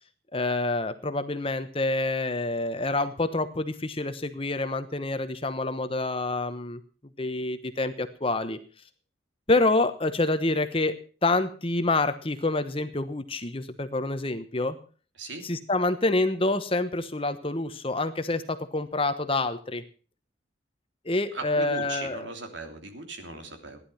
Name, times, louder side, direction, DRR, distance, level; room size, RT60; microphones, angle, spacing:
voice 1, 0.3-6.8 7.2-8.6 9.5-10.9 11.2-14.8 15.4-19.8 21.0-22.3, left 2 dB, 30° left, 10 dB, 1.1 m, -27 dB
voice 2, 21.3-23.8, right 3 dB, 70° right, 5 dB, 3.2 m, -38 dB
16.0 x 11.0 x 5.7 m, 0.39 s
head